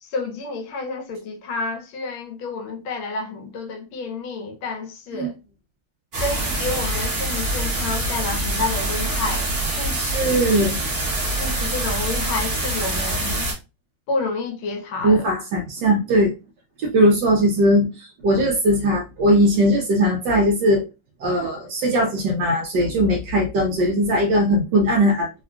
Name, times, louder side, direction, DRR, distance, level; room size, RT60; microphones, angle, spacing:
voice 1, 0.0-5.4 6.2-9.5 9.8-10.3 11.4-13.5 14.1-15.2, left 3 dB, 75° left, 1.4 m, -29 dB
sound 1, 6.1-13.5, right 1 dB, 45° right, 0.8 m, -25 dB
voice 2, 9.9-10.9 15.0-16.3 16.8-20.8 21.2-25.3, equal, 75° right, 1.0 m, -19 dB
3.6 x 2.3 x 2.3 m
omnidirectional pair, 2.3 m